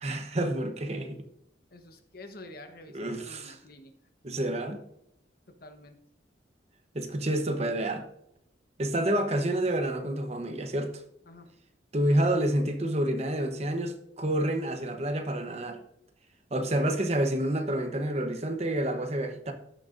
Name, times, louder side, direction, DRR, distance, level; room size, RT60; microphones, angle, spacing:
voice 1, 0.0-1.2 2.9-3.6 4.2-4.8 6.9-8.0 8.8-11.0 11.9-15.8 16.5-19.5, right 1 dB, 35° right, 0.9 m, -28 dB
voice 2, 1.7-4.0 5.5-6.0 11.3-11.5 16.6-16.8, left 1 dB, 55° left, 1.1 m, -48 dB
16.5 x 6.4 x 2.6 m
head